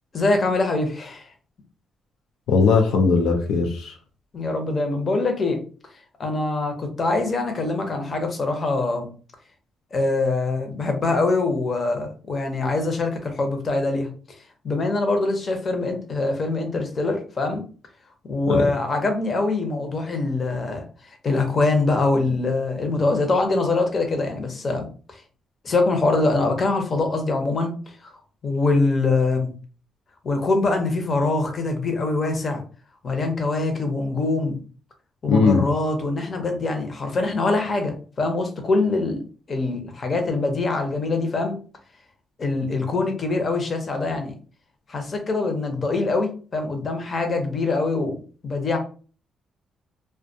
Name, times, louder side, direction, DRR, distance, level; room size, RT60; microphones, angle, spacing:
voice 1, 0.1-1.3 4.3-5.6 6.2-9.1 9.9-14.1 14.6-17.6 18.2-20.8 21.2-24.9 25.6-27.7 28.0-28.1 28.4-29.5 30.2-32.6 33.0-34.6 35.2-39.2 39.5-41.6 42.4-44.3 44.9-48.2 48.4-48.8, left 3 dB, 40° left, 4 dB, 0.7 m, -23 dB
voice 2, 2.5-3.9 18.5-18.7 35.3-35.6, left 4 dB, 85° left, 2 dB, 0.4 m, -19 dB
2.2 x 2.2 x 2.7 m, 0.38 s
cardioid pair, 90°, 0 cm